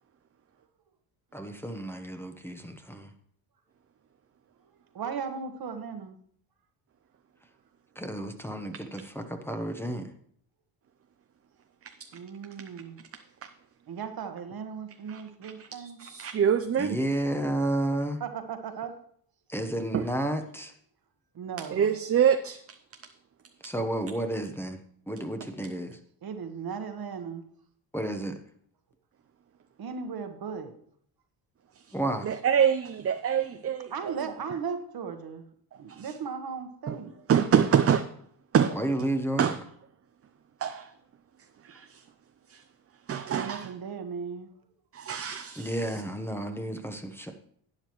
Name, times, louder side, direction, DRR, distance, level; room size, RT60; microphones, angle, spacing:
voice 1, 1.3-3.1 8.0-10.1 16.8-18.2 19.5-20.7 23.6-24.8 25.1-26.0 27.9-28.3 31.9-32.3 38.7-39.4 45.6-47.3, right 1 dB, 5° left, 1.0 m, -31 dB
voice 2, 4.9-6.2 12.1-13.0 13.9-16.0 18.2-19.0 21.3-21.9 26.2-27.5 29.8-30.7 33.9-35.4 35.8-37.2 43.3-44.5, right 6 dB, 50° right, 1.3 m, -37 dB
voice 3, 15.1-17.0 19.9-20.1 21.6-22.6 31.9-32.0 32.2-34.1 35.9-36.1 36.9-37.0 37.3-38.0 38.5-38.8 39.4-39.6 40.6-40.9 41.6-42.0 42.5-42.6 43.1-43.7 44.9-46.0, right 8 dB, 30° right, 0.5 m, -26 dB
12.0 x 8.8 x 3.1 m
cardioid pair, 80°, 47 cm